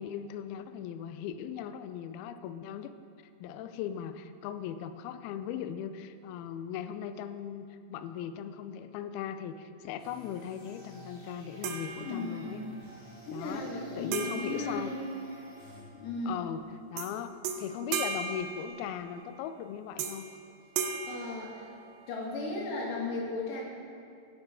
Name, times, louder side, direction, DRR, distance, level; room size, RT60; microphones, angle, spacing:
voice 1, 0.0-2.9 3.4-12.6 13.3-13.6 14.0-14.9 16.3-16.6 16.9-20.3, left 9 dB, 90° left, 10 dB, 2.2 m, -38 dB
sound 1, 10.0-15.8, left 1 dB, 20° left, 2.1 m, -51 dB
sound 2, 11.6-12.6 14.1-15.7 17.0-17.1 17.4-19.3 20.0-20.4 20.8-22.2, right 6 dB, 80° right, 2.1 m, -37 dB
voice 2, 12.0-12.7 13.3-15.0 15.9-16.5 21.1-21.7 22.1-23.6, left 2 dB, 75° left, -3 dB, 4.0 m, -36 dB
16.0 x 9.0 x 3.6 m, 2.3 s
omnidirectional pair, 5.0 m